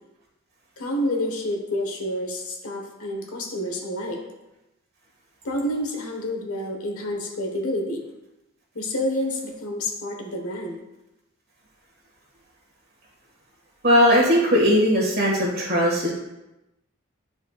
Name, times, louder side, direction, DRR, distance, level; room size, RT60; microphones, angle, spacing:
voice 1, 0.8-4.2 5.4-8.0 8.7-10.8, left 1 dB, 85° left, 1 dB, 1.3 m, -28 dB
voice 2, 13.8-16.1, equal, 45° right, -3 dB, 1.8 m, -19 dB
10.5 x 4.4 x 2.4 m, 0.96 s
head